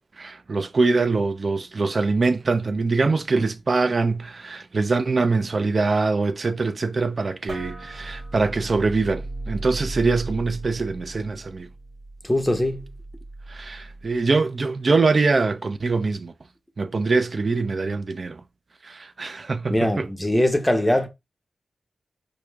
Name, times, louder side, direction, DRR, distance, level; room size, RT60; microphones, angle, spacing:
voice 1, 0.2-11.7 13.5-16.3 16.8-18.4 18.8-20.1, right 3 dB, 45° right, 0.4 m, -23 dB
sound 1, 7.5-14.2, right 2 dB, 80° right, 2.1 m, -36 dB
voice 2, 12.2-12.9 19.7-21.1, left 1 dB, 5° left, 0.6 m, -21 dB
4.6 x 2.5 x 2.3 m
wide cardioid pair, 120°, 0 cm